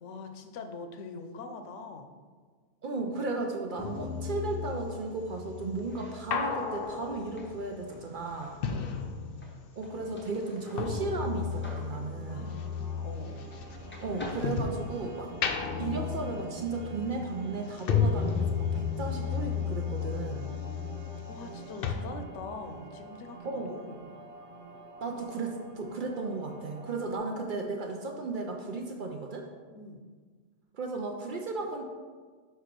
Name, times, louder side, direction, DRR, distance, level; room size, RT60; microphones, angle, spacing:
voice 1, 0.0-2.1 8.7-9.2 12.3-13.5 20.5-21.0 21.3-24.0 29.7-30.0, left 3 dB, 85° left, 6 dB, 1.0 m, -44 dB
voice 2, 2.8-8.6 9.8-12.5 14.0-15.3 15.8-20.5 23.4-23.7 25.0-29.5 30.7-31.8, right 3 dB, 55° right, 3 dB, 0.6 m, -35 dB
sound 1, 3.8-9.8 10.0-14.9 15.3-21.6 21.8-21.9, left 6 dB, 60° left, 0.7 m, -33 dB
sound 2, 5.8-13.6 13.9-15.5, left 1 dB, 10° left, 0.6 m, -48 dB
sound 3, 9.9-27.2, right 2 dB, 75° right, 1.1 m, -48 dB
4.8 x 4.5 x 5.1 m, 1.5 s
omnidirectional pair, 1.2 m